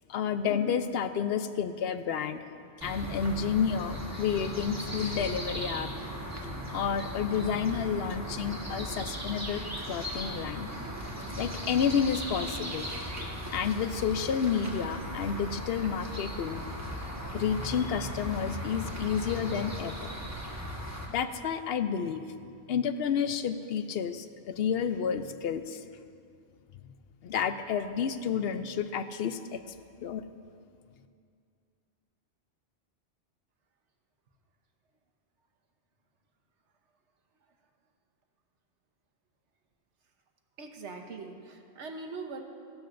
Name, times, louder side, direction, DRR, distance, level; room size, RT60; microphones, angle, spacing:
voice 1, 0.1-2.4 2.8-5.9 6.4-10.7 11.2-12.9 13.5-16.6 17.3-20.1 21.1-22.2 22.7-25.8 27.2-29.6 30.0-30.2, left 7 dB, 65° left, 10 dB, 0.7 m, -30 dB
sound 1, 2.8-21.1, equal, 15° right, 1.3 m, -37 dB
voice 2, 40.6-42.4, right 3 dB, 80° right, 4 dB, 1.3 m, -41 dB
16.0 x 12.0 x 2.6 m, 2.3 s
omnidirectional pair, 1.2 m